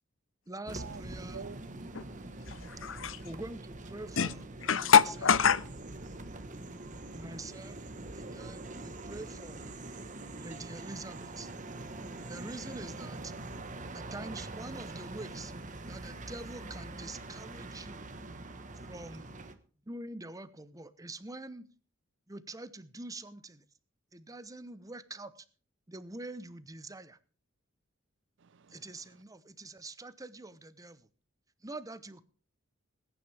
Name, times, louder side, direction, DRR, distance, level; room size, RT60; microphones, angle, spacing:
voice 1, 0.5-1.4 3.2-4.4 4.7-4.9 7.1-7.8 8.1-9.7 10.4-11.5 12.2-13.3 13.9-15.5 15.9-18.0 18.9-19.3 19.9-21.7 22.3-23.7 24.1-25.4 25.9-27.2 28.7-31.1 31.6-32.2, right 2 dB, 15° right, 0.9 m, -45 dB
sound 1, 0.7-19.5, right 2 dB, 40° right, 1.3 m, -44 dB
voice 2, 1.3-2.6 7.0-7.3 28.4-28.9, right 5 dB, 65° right, 0.6 m, -50 dB
voice 3, 2.5-3.2 4.2-4.3 4.6-5.6, left 7 dB, 70° left, 0.7 m, -25 dB
21.0 x 10.0 x 3.4 m
head